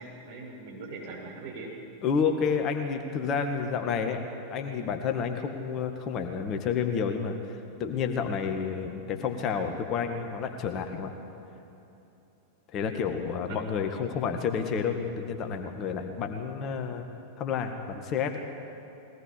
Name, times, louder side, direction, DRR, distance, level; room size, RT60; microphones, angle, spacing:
voice 1, 0.0-1.7 13.5-13.9, right 3 dB, 55° right, -3 dB, 7.1 m, -41 dB
voice 2, 2.0-11.1 12.7-17.1 17.4-18.4, left 6 dB, 35° left, 5 dB, 1.8 m, -30 dB
21.5 x 18.0 x 8.4 m, 2.9 s
figure-of-eight pair, 90°, 0 cm